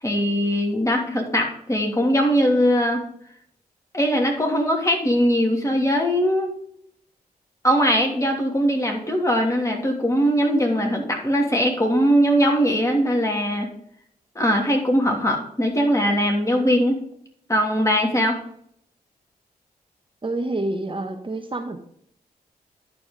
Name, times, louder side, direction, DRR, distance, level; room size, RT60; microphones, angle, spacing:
voice 1, 0.0-3.0 3.9-6.5 7.6-13.7 14.3-17.0 17.5-18.4, equal, 20° left, 1 dB, 3.0 m, -20 dB
voice 2, 20.2-21.8, right 2 dB, 35° right, 4 dB, 1.3 m, -27 dB
11.0 x 4.8 x 5.2 m, 0.67 s
cardioid pair, 60°, 16 cm